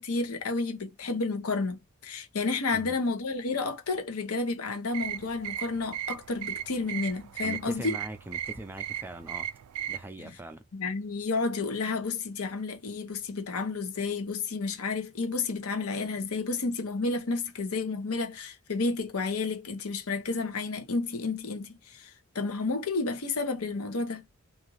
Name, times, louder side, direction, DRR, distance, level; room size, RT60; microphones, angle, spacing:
voice 1, 0.0-8.0 10.2-10.4 10.7-24.2, left 3 dB, 90° left, 0.9 m, -31 dB
sound 1, 4.9-10.0, right 11 dB, 90° right, 0.3 m, -37 dB
voice 2, 7.4-9.5 9.9-10.6, right 1 dB, 10° right, 0.3 m, -41 dB
2.6 x 2.4 x 3.1 m
head